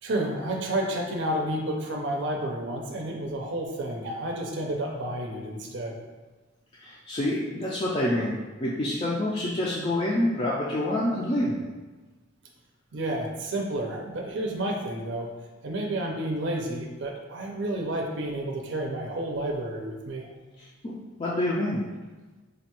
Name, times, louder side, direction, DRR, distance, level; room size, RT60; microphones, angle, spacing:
voice 1, 0.0-5.9 12.9-15.3 15.6-20.3, right 1 dB, 65° right, 1 dB, 0.5 m, -30 dB
voice 2, 6.8-8.4 8.6-11.6 20.6-20.9 21.2-21.8, left 1 dB, 30° left, -6 dB, 0.4 m, -27 dB
5.0 x 2.2 x 2.9 m, 1.3 s
head